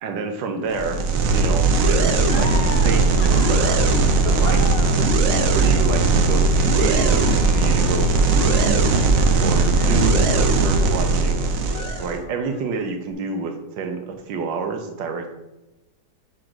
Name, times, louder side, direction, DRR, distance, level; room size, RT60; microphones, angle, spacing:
voice 1, 0.0-1.0 1.3-3.8 4.2-8.9 9.4-11.5 12.0-15.3, right 4 dB, 85° right, 5 dB, 1.6 m, -28 dB
sound 1, 0.7-12.2, right 3 dB, 60° right, 0.9 m, -18 dB
sound 2, 2.2-11.3 11.6-12.7, left 5 dB, 75° left, 0.5 m, -38 dB
5.1 x 5.0 x 6.0 m, 0.99 s
omnidirectional pair, 1.9 m